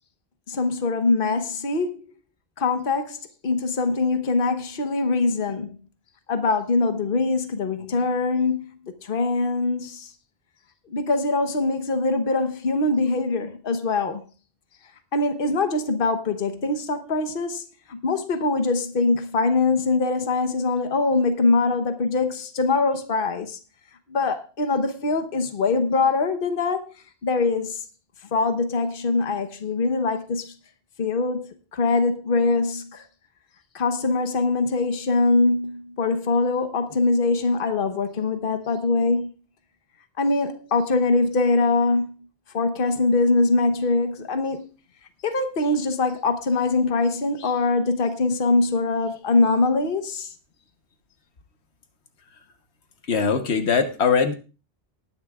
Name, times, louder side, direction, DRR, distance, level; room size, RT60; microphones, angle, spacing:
voice 1, 0.5-2.0 2.6-5.8 6.3-8.6 9.0-10.1 10.9-14.2 15.1-17.6 17.9-23.6 24.1-26.9 27.2-27.8 28.3-30.5 31.0-31.4 31.7-33.0 33.7-39.3 40.2-42.1 42.5-44.6 45.2-50.3, left 3 dB, 60° left, 1.2 m, -23 dB
voice 2, 53.1-54.3, left 5 dB, 85° left, 1.3 m, -21 dB
19.0 x 10.0 x 2.4 m
omnidirectional pair, 1.1 m